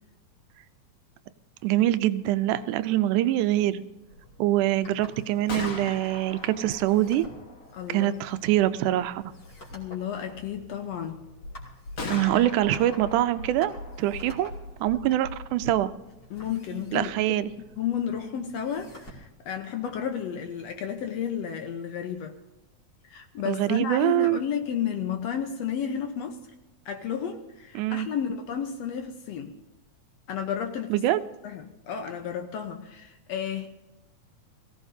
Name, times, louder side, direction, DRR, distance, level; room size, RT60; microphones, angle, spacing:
voice 1, 1.6-3.8 4.4-7.3 7.9-9.2 12.1-14.5 14.8-15.9 16.9-17.5 23.5-24.4 27.8-28.1 30.9-31.2, right 14 dB, 90° right, 12 dB, 2.2 m, -24 dB
sound 1, 4.1-21.1, equal, 35° left, 3.0 m, -52 dB
Gunshot gunfire, 5.2-19.1, left 3 dB, 50° left, 0.9 m, -43 dB
voice 2, 7.7-8.2 9.7-11.2 16.3-17.4 17.8-22.4 23.1-26.4 26.9-29.6 30.3-31.0 31.4-33.7, left 8 dB, 70° left, 6 dB, 1.8 m, -32 dB
sound 2, 11.4-15.8, left 1 dB, 85° left, 5.4 m, -40 dB
22.0 x 16.0 x 2.7 m, 0.99 s
omnidirectional pair, 3.5 m